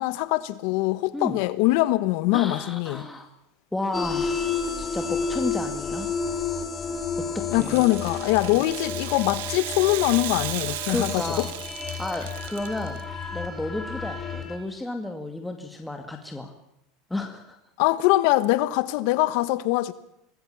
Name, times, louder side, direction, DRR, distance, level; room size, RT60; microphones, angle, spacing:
voice 1, 0.0-3.1 7.5-11.5 17.8-19.9, left 18 dB, 65° left, 1.3 m, -23 dB
voice 2, 2.3-3.3 3.7-6.1 7.2-7.3 7.5-7.8 8.5-8.6 10.9-11.5 11.9-13.0 13.3-16.5 17.1-17.6, left 2 dB, 5° left, 2.2 m, -32 dB
sound 1, 3.9-14.6, left 5 dB, 25° left, 3.8 m, -31 dB
Rattle (instrument), 7.5-13.0, right 13 dB, 75° right, 2.0 m, -35 dB
25.0 x 19.0 x 7.2 m
supercardioid pair, 120°, 0 cm